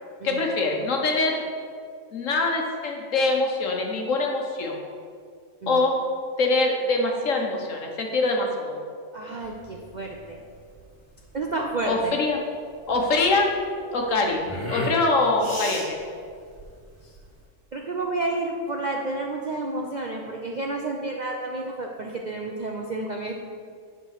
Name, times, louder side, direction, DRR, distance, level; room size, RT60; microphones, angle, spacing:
voice 1, 0.2-1.4 2.1-4.8 5.7-6.0 6.4-8.8 11.8-12.4 12.9-13.5 13.9-16.0, left 3 dB, 65° left, 1 dB, 1.5 m, -24 dB
voice 2, 9.1-10.4 11.3-12.2 17.0-17.2 17.7-23.4, right 2 dB, 50° right, 0 dB, 0.5 m, -30 dB
sound 1, 9.4-17.4, equal, 10° left, 2.4 m, -37 dB
10.0 x 3.8 x 6.5 m, 2.2 s
omnidirectional pair, 1.5 m